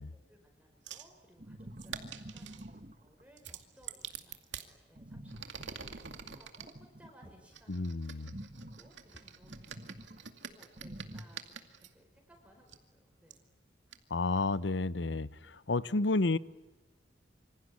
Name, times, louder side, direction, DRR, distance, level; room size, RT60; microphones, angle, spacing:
voice 1, 0.1-10.0 10.5-13.5, equal, 5° right, 2 dB, 4.9 m, -62 dB
sound 1, 0.9-1.1 1.8-2.7 3.4-4.7 5.3-6.7 7.5-11.9 12.7-12.8 13.3-13.4 13.9-14.0, right 8 dB, 85° right, 2.3 m, -46 dB
sound 2, 1.4-3.2 5.0-7.6 8.2-10.2 10.8-11.2, right 1 dB, 45° right, 1.8 m, -48 dB
voice 2, 7.7-8.3 14.1-16.4, left 3 dB, 80° left, 17 dB, 0.9 m, -31 dB
27.0 x 25.5 x 8.5 m, 1.1 s
head